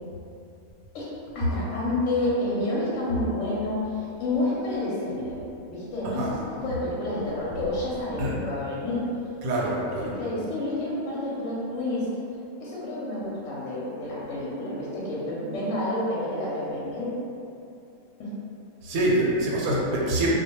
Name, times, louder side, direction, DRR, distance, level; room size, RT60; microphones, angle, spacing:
voice 1, 1.3-5.4 5.7-9.0 9.5-9.7 10.0-12.1 12.6-17.1 18.2-18.3, left 2 dB, 65° left, -7 dB, 0.8 m, -29 dB
voice 2, 9.4-10.1 18.8-20.3, right 1 dB, 85° right, -4 dB, 1.0 m, -25 dB
2.2 x 2.1 x 2.8 m, 2.7 s
omnidirectional pair, 1.5 m